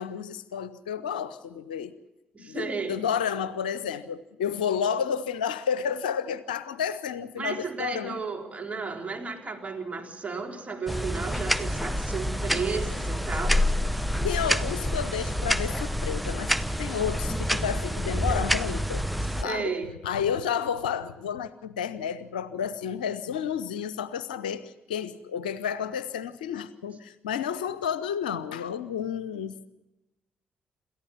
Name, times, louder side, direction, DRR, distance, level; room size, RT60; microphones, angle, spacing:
voice 1, 0.0-1.9 2.4-8.2 14.2-16.5 16.8-19.1 19.4-19.7 20.0-29.7, left 8 dB, 75° left, 0.6 m, -31 dB
voice 2, 2.3-3.0 7.4-13.6 19.4-19.9, right 4 dB, 30° right, 3.8 m, -33 dB
sound 1, 10.9-19.4, equal, ahead, 0.8 m, -27 dB
27.5 x 14.0 x 7.0 m
figure-of-eight pair, 40°, 5 cm